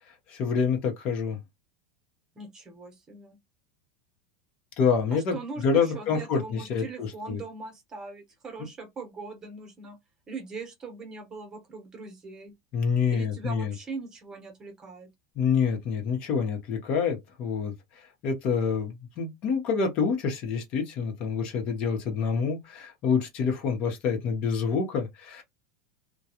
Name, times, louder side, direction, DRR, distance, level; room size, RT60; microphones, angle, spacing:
voice 1, 0.3-1.4 4.8-7.4 12.7-13.7 15.4-17.7 18.2-25.4, left 6 dB, 50° left, 0.9 m, -27 dB
voice 2, 2.3-3.4 5.1-10.0 10.3-12.5 13.1-15.1, right 4 dB, 25° right, 1.0 m, -40 dB
2.3 x 2.2 x 2.8 m
supercardioid pair, 110°, 2 cm